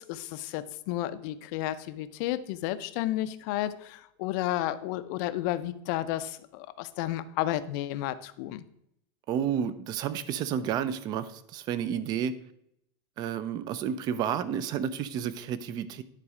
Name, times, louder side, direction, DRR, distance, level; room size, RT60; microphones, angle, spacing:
voice 1, 0.0-8.6, left 14 dB, 50° left, 13 dB, 0.5 m, -32 dB
voice 2, 9.3-12.3 13.2-16.0, right 8 dB, 35° right, 15 dB, 0.5 m, -31 dB
9.9 x 4.1 x 4.8 m, 0.75 s
supercardioid pair, 160°, 13 cm